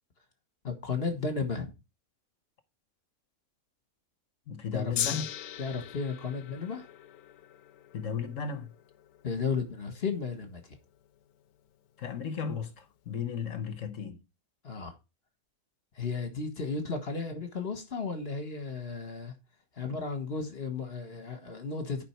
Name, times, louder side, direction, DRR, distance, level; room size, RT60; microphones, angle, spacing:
voice 1, 0.6-1.7 4.7-5.2 5.6-6.9 9.2-10.7 14.6-14.9 16.0-19.3 19.8-22.0, left 4 dB, 45° left, 1.8 m, -34 dB
voice 2, 4.5-5.3 7.9-8.7 12.0-14.2, left 6 dB, 65° left, 1.3 m, -35 dB
Gong, 5.0-11.3 12.1-12.2, left 11 dB, 90° left, 1.1 m, -40 dB
11.0 x 5.4 x 4.5 m
omnidirectional pair, 1.5 m